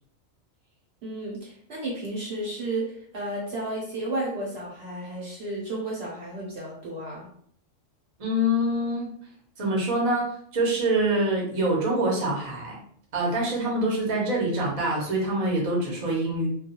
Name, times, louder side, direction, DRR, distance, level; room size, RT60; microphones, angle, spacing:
voice 1, 1.0-2.9 3.1-7.2, right 2 dB, 60° right, -4 dB, 0.9 m, -32 dB
voice 2, 8.2-9.1 9.6-10.3 10.5-12.8 13.1-16.5, right 1 dB, 35° right, -3 dB, 0.7 m, -25 dB
2.3 x 2.3 x 2.8 m, 0.63 s
omnidirectional pair, 1.4 m